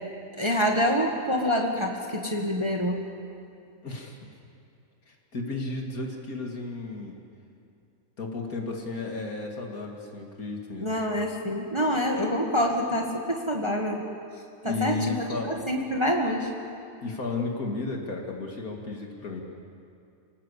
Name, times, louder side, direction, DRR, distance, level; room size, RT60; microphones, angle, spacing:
voice 1, 0.4-3.0 10.8-14.0 14.6-15.2 15.5-16.5, equal, 20° right, 1 dB, 1.7 m, -26 dB
voice 2, 3.8-4.2 5.1-7.2 8.2-10.9 14.7-15.6 17.0-19.4, left 3 dB, 70° left, 0 dB, 2.7 m, -33 dB
26.5 x 18.5 x 8.3 m, 2.5 s
omnidirectional pair, 1.6 m